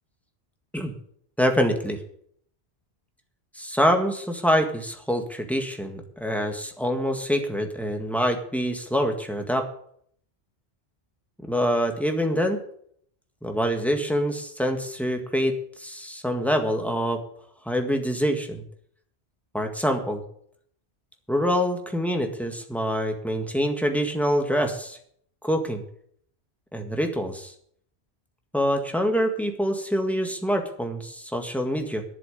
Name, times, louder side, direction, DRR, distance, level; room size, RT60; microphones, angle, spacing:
voice 1, 1.4-2.0 3.6-9.7 11.4-12.6 13.4-17.2 17.7-18.6 19.5-20.2 21.3-25.0 25.4-25.8 26.7-27.5 28.5-32.0, equal, ahead, 4 dB, 1.6 m, -25 dB
11.0 x 7.6 x 9.2 m, 0.66 s
omnidirectional pair, 1.1 m